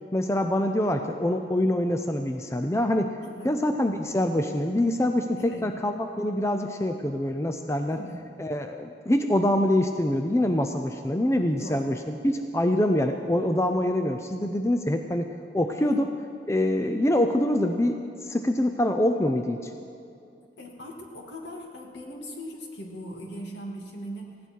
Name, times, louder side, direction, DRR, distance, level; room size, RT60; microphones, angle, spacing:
voice 1, 0.1-3.2 3.4-8.0 8.4-16.1 16.5-19.7, left 1 dB, 15° left, 6 dB, 0.5 m, -25 dB
voice 2, 3.2-3.5 5.4-5.6 7.9-8.2 11.6-11.8 15.8-16.0 20.6-24.3, equal, 70° left, 0 dB, 2.6 m, -39 dB
19.5 x 15.5 x 4.6 m, 2.5 s
head